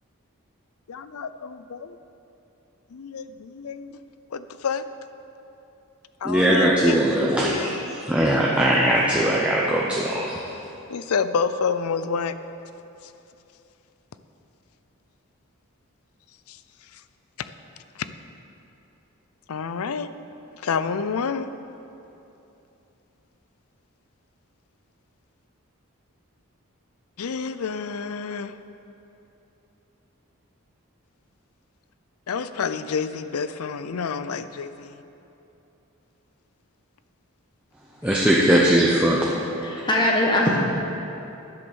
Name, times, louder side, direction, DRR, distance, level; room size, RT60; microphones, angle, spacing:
voice 1, 0.9-2.0 2.9-3.9 4.3-4.8 6.2-7.8 10.9-12.3 16.5-16.6 17.4-17.5 18.0-18.1 19.5-20.1 20.6-21.5 27.2-28.5 32.3-35.0, left 5 dB, 85° left, 12 dB, 0.5 m, -28 dB
voice 2, 6.2-10.4 38.0-39.3, right 1 dB, 5° right, -5 dB, 0.8 m, -20 dB
voice 3, 39.6-40.6, left 1 dB, 20° left, -1 dB, 1.2 m, -21 dB
10.5 x 8.0 x 6.3 m, 2.9 s
head